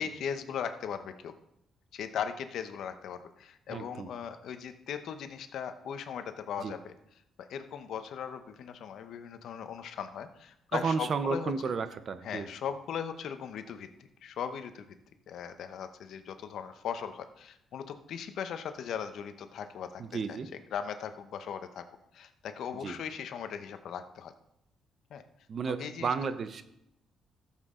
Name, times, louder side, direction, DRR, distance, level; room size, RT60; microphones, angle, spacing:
voice 1, 0.0-1.3 1.9-6.9 7.4-11.5 12.2-13.9 14.2-14.9 15.3-20.4 20.7-21.8 22.1-24.3 25.1-25.2 25.8-26.1, left 7 dB, 70° left, 9 dB, 0.9 m, -38 dB
voice 2, 3.7-4.1 6.6-6.7 10.7-12.5 20.0-20.5 22.8-23.0 25.5-26.6, right 5 dB, 50° right, 12 dB, 0.8 m, -32 dB
13.5 x 7.4 x 3.8 m, 0.81 s
cardioid pair, 90°, 0 cm